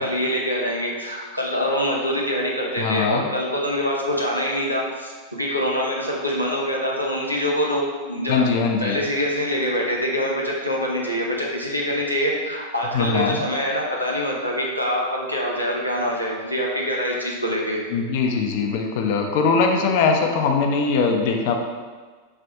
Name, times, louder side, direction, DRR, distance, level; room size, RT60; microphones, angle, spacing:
voice 1, 0.0-8.5 8.8-17.8, equal, 90° right, -3 dB, 0.7 m, -25 dB
voice 2, 2.8-3.3 8.3-9.0 12.9-13.4 17.9-21.5, left 5 dB, 50° left, 3 dB, 0.5 m, -21 dB
4.4 x 2.5 x 3.5 m, 1.4 s
figure-of-eight pair, 90°, 0 cm